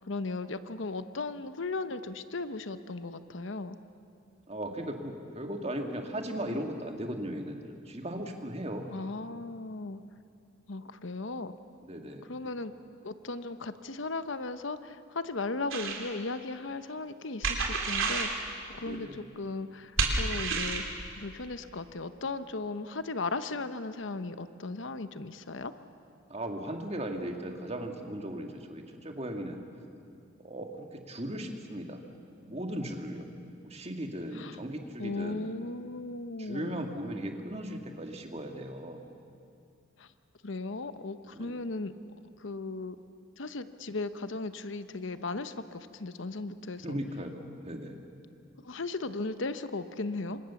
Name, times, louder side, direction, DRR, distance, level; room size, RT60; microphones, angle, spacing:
voice 1, 0.1-3.8 8.9-10.0 10.7-11.5 12.3-12.7 13.0-19.9 20.2-20.8 21.2-25.7 34.3-34.6 35.0-36.8 40.0-40.1 40.4-41.9 42.4-43.0 43.4-47.0 48.6-50.4, left 3 dB, 70° left, 11 dB, 0.9 m, -36 dB
voice 2, 4.5-8.9 11.8-12.3 18.8-19.2 26.3-29.6 30.4-32.0 32.5-33.3 33.6-35.5 36.4-39.0 41.3-41.7 46.8-48.0, right 1 dB, 30° right, 4 dB, 2.1 m, -37 dB
sound 1, 15.7-16.0 17.4-18.4 20.0-20.9, right 4 dB, 85° right, 3.5 m, -29 dB
28.0 x 25.0 x 7.1 m, 2.5 s
head